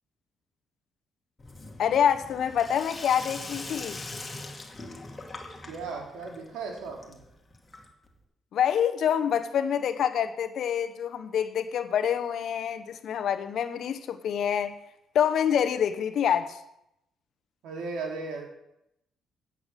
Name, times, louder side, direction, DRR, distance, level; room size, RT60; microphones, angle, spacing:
Sink (filling or washing), 1.4-8.2, left 2 dB, 25° left, 2.1 m, -42 dB
voice 1, 1.8-4.0 8.5-14.8 15.1-16.6, left 8 dB, 70° left, 0.9 m, -26 dB
voice 2, 5.7-7.2 17.6-18.4, right 4 dB, 90° right, 2.8 m, -36 dB
9.0 x 7.9 x 6.7 m
cardioid pair, 90°, 0 cm